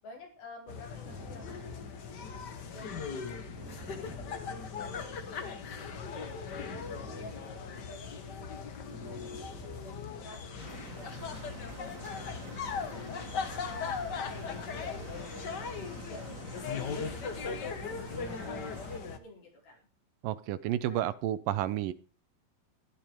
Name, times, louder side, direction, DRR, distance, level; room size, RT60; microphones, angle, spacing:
voice 1, 0.0-1.8 2.0-6.6 6.9-9.3 9.6-13.0 13.6-18.5 18.8-19.8 20.8-21.1, left 2 dB, 90° left, 0 dB, 6.8 m, -53 dB
sound 1, 0.7-19.2, left 5 dB, 60° left, 1.0 m, -39 dB
sound 2, 1.0-5.4 5.7-10.6, equal, 10° right, 1.2 m, -50 dB
sound 3, 10.6-19.0, right 3 dB, 45° right, 1.1 m, -47 dB
voice 2, 20.2-21.9, right 12 dB, 80° right, 16 dB, 2.3 m, -31 dB
13.0 x 12.0 x 5.0 m, 0.36 s
omnidirectional pair, 4.1 m